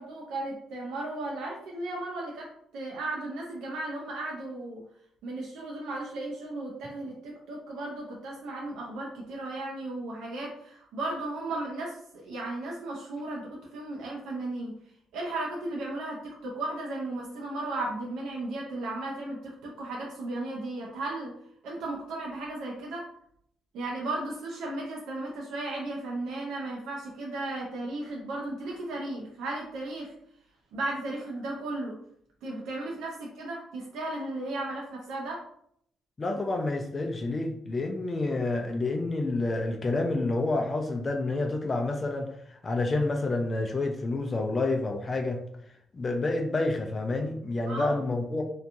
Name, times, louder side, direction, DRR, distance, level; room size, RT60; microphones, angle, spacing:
voice 1, 0.0-4.8 5.2-14.7 15.1-21.3 21.6-23.0 23.7-30.1 30.7-32.0 32.4-35.4 47.7-48.0, right 2 dB, 85° right, -2 dB, 0.5 m, -35 dB
voice 2, 36.2-45.4 45.9-48.4, left 2 dB, 30° left, 2 dB, 0.4 m, -29 dB
2.7 x 2.3 x 2.5 m, 0.69 s
cardioid pair, 90°, 0 cm